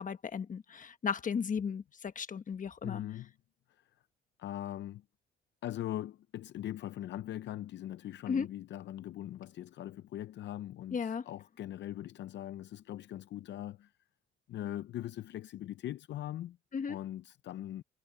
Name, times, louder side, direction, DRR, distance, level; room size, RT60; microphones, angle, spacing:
voice 1, 0.0-3.0 8.3-8.5 10.9-11.2 16.7-17.0, left 6 dB, 40° left, 1.3 m, -35 dB
voice 2, 2.8-3.3 3.7-3.9 4.4-5.0 5.6-13.9 14.5-16.6 16.9-17.8, left 12 dB, 65° left, 0.5 m, -41 dB
cardioid pair, 90°, 20 cm